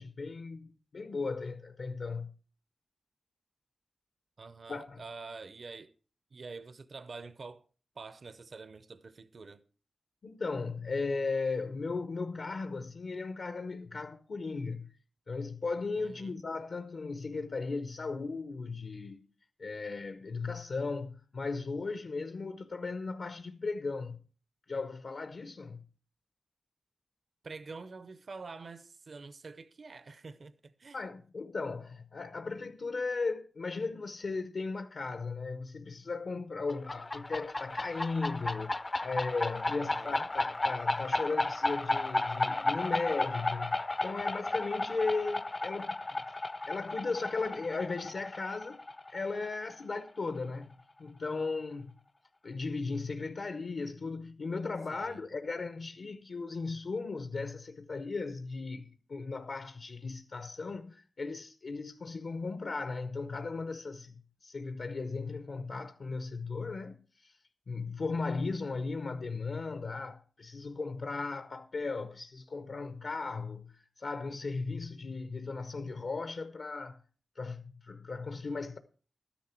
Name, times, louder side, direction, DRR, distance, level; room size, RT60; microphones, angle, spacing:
voice 1, 0.0-2.3 4.7-5.0 10.2-14.9 15.3-19.3 19.6-24.2 24.7-25.8 30.9-46.3 46.7-48.8 49.1-50.7 51.0-52.0 52.4-64.1 64.4-67.4 67.7-77.0 77.4-78.8, left 4 dB, 60° left, 0.7 m, -36 dB
voice 2, 4.4-5.9 6.3-7.6 8.0-9.6 16.0-16.4 27.4-31.0 39.6-40.3 54.9-55.2, right 4 dB, 55° right, 0.7 m, -47 dB
sound 1, 36.7-50.1, left 2 dB, 25° left, 0.5 m, -34 dB
13.0 x 10.0 x 4.4 m
wide cardioid pair, 135°, 0 cm